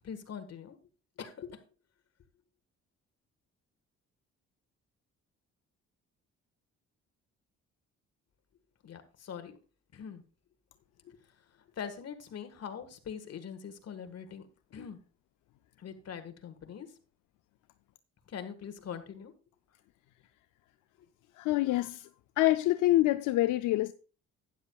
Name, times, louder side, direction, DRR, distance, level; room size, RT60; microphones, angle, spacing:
voice 1, 0.0-0.8 1.2-1.6 8.8-9.6 9.9-10.2 11.0-11.2 11.8-14.4 14.7-15.0 15.8-16.9 18.3-19.3, left 7 dB, 55° left, 1.6 m, -42 dB
voice 2, 21.3-22.1 22.4-23.9, left 16 dB, 90° left, 0.5 m, -26 dB
12.5 x 9.7 x 2.4 m
cardioid pair, 90°, 30 cm